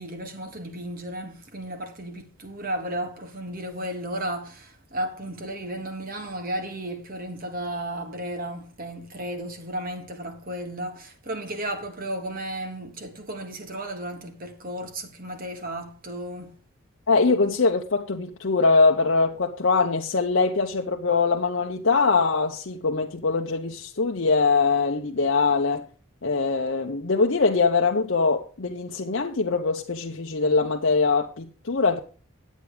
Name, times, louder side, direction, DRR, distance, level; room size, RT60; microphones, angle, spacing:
voice 1, 0.0-16.6, right 1 dB, 45° right, 1.6 m, -34 dB
voice 2, 17.1-25.9 26.2-32.0, left 4 dB, 60° left, 0.8 m, -22 dB
9.9 x 8.3 x 4.9 m
head